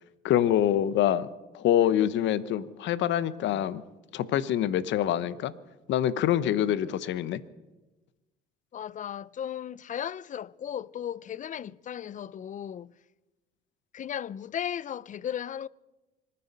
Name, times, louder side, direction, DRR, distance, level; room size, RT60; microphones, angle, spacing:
voice 1, 0.2-1.3 1.5-3.8 4.1-5.5 5.9-7.4, left 11 dB, 65° left, 1.0 m, -25 dB
voice 2, 8.7-12.9 13.9-15.7, left 9 dB, 40° left, 0.5 m, -36 dB
25.5 x 10.0 x 5.5 m
supercardioid pair, 80°, 20 cm